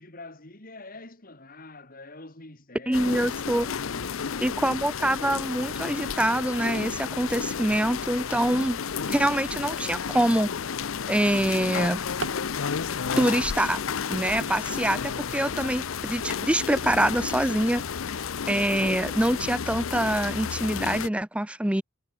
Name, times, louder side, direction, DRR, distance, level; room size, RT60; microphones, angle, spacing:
voice 1, 0.0-4.8, left 2 dB, 40° left, 3.3 m, -46 dB
sound 1, 2.9-21.1, left 6 dB, 65° left, 0.6 m, -32 dB
voice 2, 2.9-3.7 4.4-8.8 9.1-10.5 11.1-12.0 13.2-13.8 14.1-17.8 18.5-21.8, right 1 dB, 5° right, 0.5 m, -25 dB
Drawer open or close, 10.7-12.5 13.6-15.2 15.7-18.1 18.8-18.9 19.4-19.5 19.8-20.2, right 3 dB, 60° right, 2.8 m, -43 dB
head